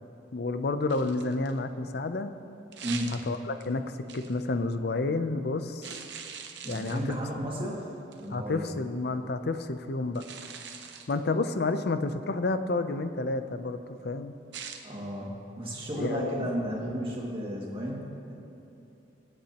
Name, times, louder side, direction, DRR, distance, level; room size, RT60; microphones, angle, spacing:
voice 1, 0.3-2.3 3.3-3.8 4.1-5.9 6.7-7.2 7.6-7.8 8.3-10.2 11.1-14.4 15.9-16.5, left 3 dB, 55° left, 10 dB, 0.6 m, -30 dB
sound 1, 0.9-1.6 2.7-3.7 4.1-4.4 5.8-7.3 8.1-8.3 10.1-11.2 14.5-14.8, right 7 dB, 65° right, 0.9 m, -42 dB
voice 2, 2.8-3.2 6.6-7.9 8.2-8.7 14.8-18.3, equal, 30° right, -4 dB, 2.2 m, -33 dB
24.5 x 8.7 x 2.9 m, 2.8 s
head